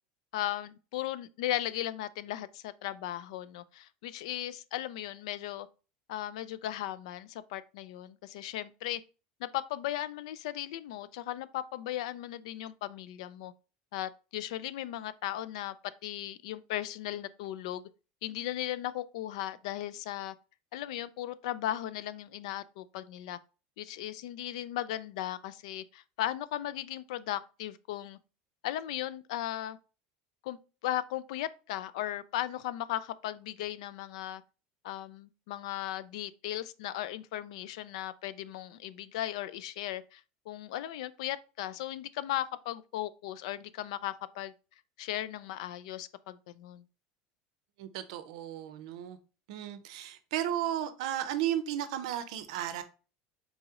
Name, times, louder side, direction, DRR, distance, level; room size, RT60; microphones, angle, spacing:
voice 1, 0.3-5.7 6.1-9.0 9.4-13.5 13.9-15.8 16.0-17.8 18.2-20.3 20.7-23.4 23.8-28.2 28.6-29.8 30.4-30.6 30.8-34.4 34.8-44.5 45.0-46.8, left 13 dB, 85° left, 0.3 m, -37 dB
voice 2, 47.8-49.2 49.5-52.8, right 11 dB, 75° right, 0.6 m, -34 dB
4.0 x 2.9 x 3.6 m
cardioid pair, 180°, 3 cm